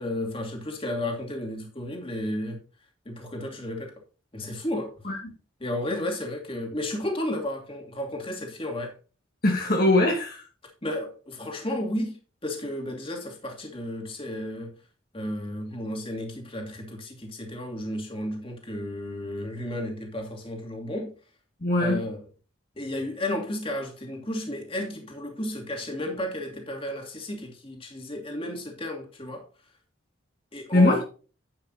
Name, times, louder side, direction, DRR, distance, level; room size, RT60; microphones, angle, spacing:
voice 1, 0.0-2.6 3.1-3.9 4.3-4.9 5.6-8.9 10.8-14.8 15.1-21.1 21.7-22.2 22.8-29.5 30.5-31.0, left 1 dB, 25° left, 2.6 m, -33 dB
voice 2, 9.4-10.4 21.6-22.0 30.7-31.0, left 2 dB, 45° left, 2.0 m, -21 dB
10.5 x 9.6 x 2.8 m
head